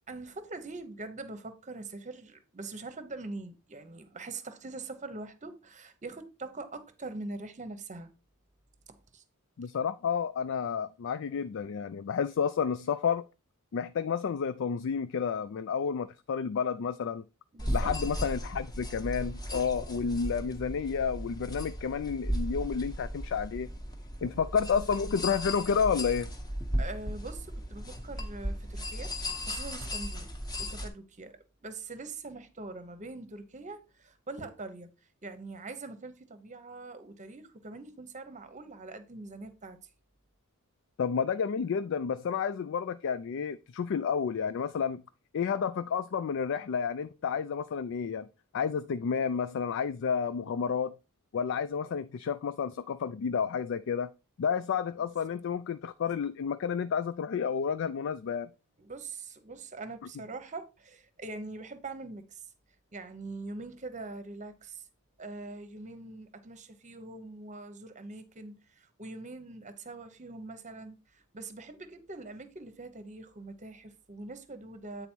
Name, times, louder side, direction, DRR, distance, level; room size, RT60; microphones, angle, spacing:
voice 1, 0.1-8.1 8.9-9.2 17.5-17.9 24.2-24.4 26.7-29.1 29.5-30.3 30.6-34.9 35.2-39.9 55.0-55.1 58.8-62.4 62.9-64.8 65.2-75.1, right 3 dB, 35° right, 0.9 m, -43 dB
voice 2, 9.6-13.2 13.7-17.2 17.7-23.7 24.2-26.3 41.0-45.0 45.3-48.3 48.5-50.9 51.3-54.1 54.4-58.5, left 6 dB, 55° left, 0.4 m, -30 dB
sound 1, 17.6-30.9, equal, 20° left, 1.1 m, -36 dB
8.6 x 4.0 x 4.5 m
head